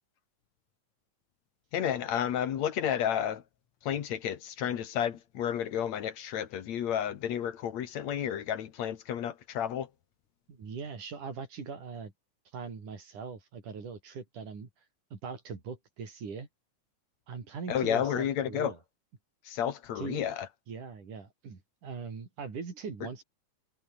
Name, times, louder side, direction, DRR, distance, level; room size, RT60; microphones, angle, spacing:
voice 1, 1.7-3.4 3.8-9.9 17.7-18.7 19.5-20.5, left 9 dB, 65° left, 2.7 m, -31 dB
voice 2, 10.5-12.1 12.5-14.7 15.1-16.5 17.3-18.8 20.0-20.2 20.7-23.2, right 5 dB, 80° right, 6.1 m, -41 dB
omnidirectional pair, 3.5 m